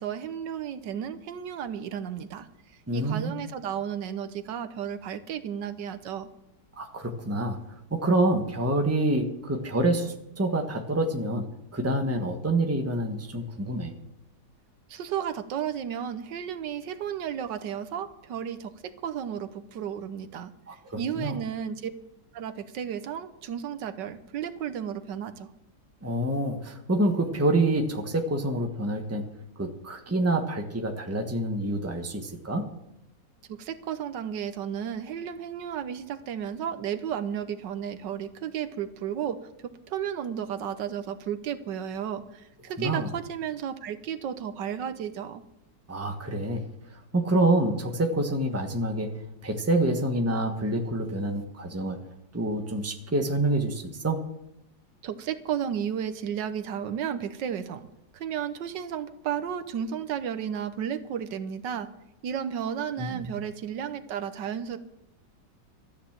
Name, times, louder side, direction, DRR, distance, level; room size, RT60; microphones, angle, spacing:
voice 1, 0.0-2.5 2.9-6.3 14.9-20.5 21.0-21.9 22.3-25.5 33.6-45.4 55.0-57.8 58.1-61.9 62.2-64.8, right 8 dB, 80° right, 10 dB, 1.5 m, -33 dB
voice 2, 2.9-3.3 6.8-7.6 7.9-11.4 11.7-13.9 20.7-21.4 26.0-29.3 29.6-32.7 42.8-43.1 45.9-46.7 47.1-49.1 49.4-52.0 52.3-54.2 63.0-63.3, right 1 dB, 10° right, 4 dB, 1.1 m, -27 dB
13.5 x 9.8 x 7.4 m, 0.85 s
omnidirectional pair, 1.9 m